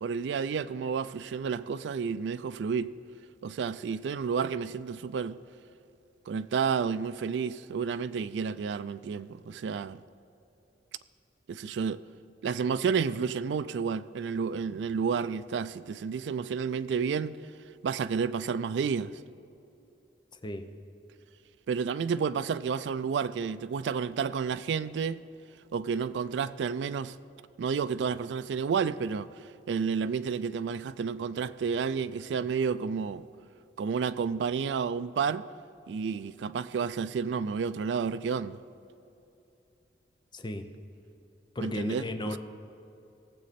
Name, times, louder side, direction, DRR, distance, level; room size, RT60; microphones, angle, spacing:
voice 1, 0.0-2.9 3.4-5.4 6.3-10.0 11.5-12.0 12.4-17.4 17.8-19.1 21.7-25.2 25.7-27.1 27.6-29.3 29.7-33.3 33.8-35.5 35.9-38.6 41.6-42.4, right 6 dB, 80° right, 0.3 m, -31 dB
voice 2, 40.3-40.7 41.5-42.4, left 1 dB, 25° left, 0.6 m, -34 dB
18.0 x 7.5 x 4.2 m
head